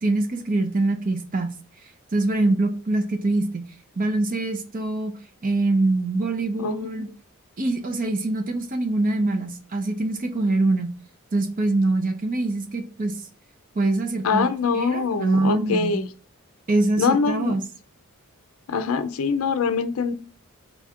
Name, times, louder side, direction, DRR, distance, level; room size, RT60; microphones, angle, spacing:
voice 1, 0.0-1.5 2.1-3.7 4.0-5.1 5.4-7.1 7.6-10.9 11.3-13.1 13.8-14.5 14.7-16.0 16.7-17.6, right 2 dB, 35° right, 0.6 m, -24 dB
voice 2, 6.6-7.1 14.2-16.1 17.0-17.6 18.7-20.1, left 5 dB, 70° left, 0.5 m, -24 dB
4.0 x 2.4 x 4.2 m
head